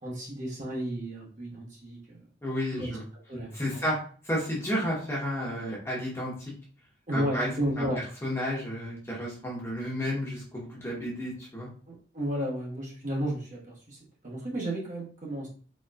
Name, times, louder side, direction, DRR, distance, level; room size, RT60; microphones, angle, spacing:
voice 1, 0.0-2.2 2.7-3.0 3.3-3.9 7.1-8.0 11.9-14.0 14.2-15.5, equal, 40° right, -4 dB, 1.1 m, -33 dB
voice 2, 2.4-3.0 3.5-4.0 4.2-6.5 7.1-7.5 7.8-7.9 8.2-11.7, equal, 15° left, -5 dB, 1.1 m, -32 dB
4.2 x 3.0 x 2.4 m, 0.42 s
head